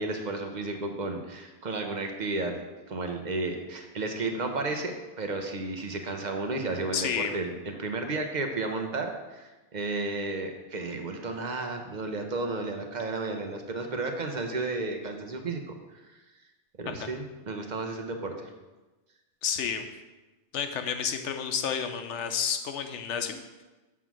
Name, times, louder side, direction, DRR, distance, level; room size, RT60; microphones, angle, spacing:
voice 1, 0.0-2.5 2.9-16.0 16.8-18.5, right 3 dB, 45° right, 4 dB, 0.8 m, -33 dB
voice 2, 6.9-7.3 16.9-17.1 19.4-19.8 20.5-23.6, left 7 dB, 85° left, 7 dB, 1.0 m, -31 dB
7.2 x 3.8 x 6.1 m, 1.2 s
omnidirectional pair, 1.2 m